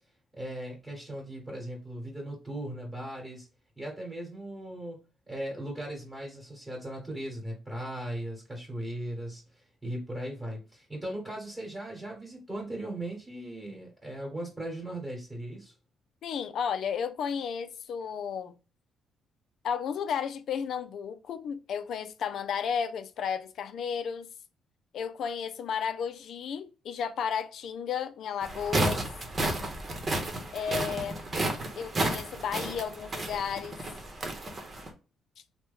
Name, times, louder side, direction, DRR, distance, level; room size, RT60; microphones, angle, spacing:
voice 1, 0.3-3.5 3.8-5.0 5.3-15.7, right 1 dB, 10° right, 1.4 m, -38 dB
voice 2, 16.2-18.5 19.6-24.3 24.9-29.0 30.5-31.2 31.8-33.8, left 7 dB, 70° left, 0.4 m, -33 dB
sound 1, 28.4-34.9, right 1 dB, 35° right, 0.9 m, -32 dB
3.0 x 2.2 x 3.6 m
cardioid pair, 90°, 0 cm